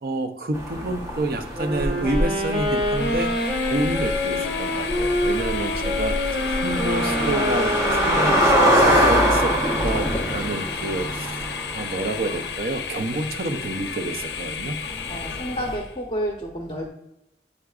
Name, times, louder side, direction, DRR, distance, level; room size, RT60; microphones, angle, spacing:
voice 1, 0.0-3.4 3.7-9.6 9.8-11.3 11.7-14.8, right 2 dB, 55° right, 8 dB, 0.5 m, -29 dB
sound 1, 0.5-15.8, equal, 15° right, 0.9 m, -25 dB
Wind instrument woodwind instrument, 1.5-9.6, equal, 35° right, 1.3 m, -27 dB
Train, 2.5-16.0, left 7 dB, 75° left, 0.5 m, -33 dB
voice 2, 15.1-16.9, equal, 30° left, -1 dB, 0.7 m, -30 dB
8.4 x 4.7 x 2.4 m, 0.87 s
head